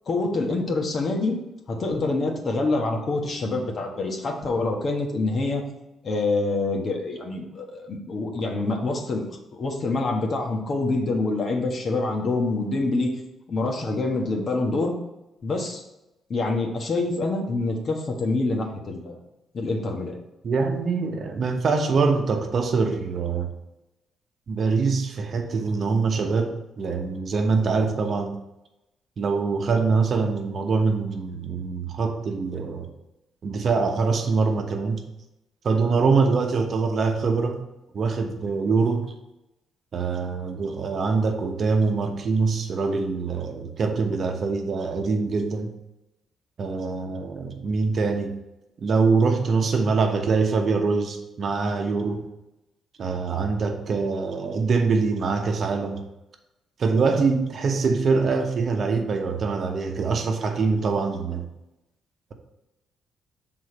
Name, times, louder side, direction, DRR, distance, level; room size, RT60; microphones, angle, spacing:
voice 1, 0.1-1.4 1.7-5.6 6.0-13.1 13.5-14.9 15.4-15.8 16.3-19.2 19.5-20.2, left 2 dB, 45° left, 1 dB, 1.4 m, -26 dB
voice 2, 20.4-23.5 24.5-28.4 29.2-32.9 33.4-35.0 35.6-37.6 37.9-39.1 39.9-45.7 46.6-48.3 48.8-52.2 53.0-56.1 56.8-61.4, right 4 dB, 50° right, 4 dB, 0.9 m, -24 dB
6.3 x 3.9 x 5.0 m, 0.93 s
cardioid pair, 90°, 0 cm